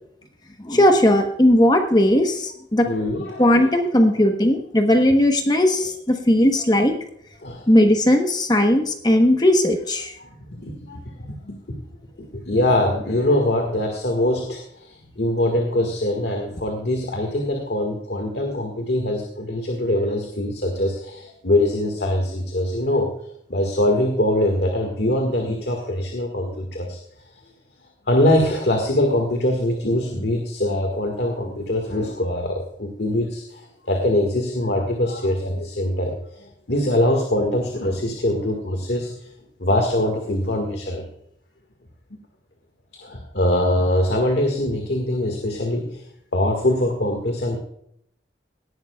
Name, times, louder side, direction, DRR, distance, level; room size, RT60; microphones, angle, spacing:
voice 1, 0.6-2.9 3.4-6.9 7.7-10.1, left 1 dB, 20° left, 5 dB, 1.1 m, -17 dB
voice 2, 2.9-3.8 7.4-7.6 10.5-11.0 11.3-11.6 12.3-14.9 15.2-23.1 23.5-27.0 28.1-33.6 33.9-36.2 36.7-39.1 39.6-41.0 43.0-46.0 46.3-47.6, left 1 dB, 65° left, 3 dB, 1.8 m, -23 dB
18.0 x 11.5 x 2.3 m, 0.71 s
head